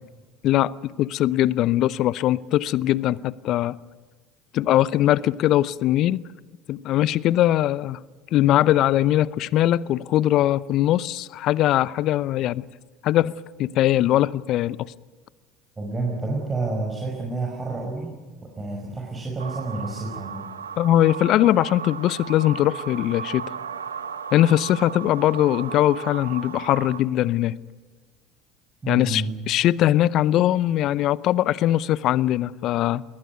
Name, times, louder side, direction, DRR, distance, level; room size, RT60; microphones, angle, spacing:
voice 1, 0.4-3.8 4.5-6.2 6.7-8.0 8.3-12.6 13.0-13.3 13.6-14.9 20.8-23.5 24.3-27.6 28.9-33.0, left 13 dB, 55° left, 0.6 m, -21 dB
voice 2, 15.8-18.1 18.4-20.5 28.8-29.3, right 3 dB, 25° right, 5.5 m, -29 dB
sound 1, 19.4-27.0, right 7 dB, 85° right, 1.2 m, -35 dB
21.5 x 18.5 x 9.4 m
hypercardioid pair, 65°, 0 cm